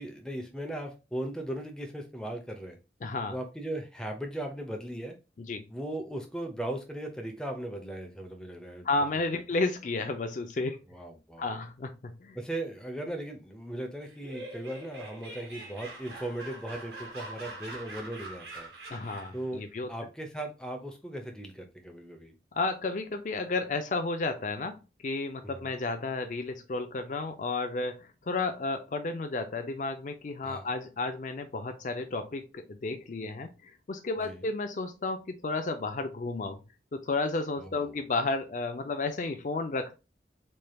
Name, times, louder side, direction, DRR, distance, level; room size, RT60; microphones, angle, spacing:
voice 1, 0.0-2.8 3.3-5.2 5.7-8.9 9.3-9.4 10.9-11.6 12.3-18.7 19.3-19.6 19.9-22.3 25.4-25.7 30.4-30.6 34.2-34.4 37.6-38.0, right 1 dB, 5° left, 3 dB, 0.6 m, -38 dB
voice 2, 3.0-3.3 5.4-5.7 8.8-10.8 11.4-12.4 18.9-19.9 22.5-36.6 36.9-39.9, left 3 dB, 45° left, 7 dB, 0.4 m, -32 dB
Laughter, 14.0-19.5, right 2 dB, 70° right, 1.5 m, -44 dB
4.3 x 3.3 x 2.2 m, 0.29 s
head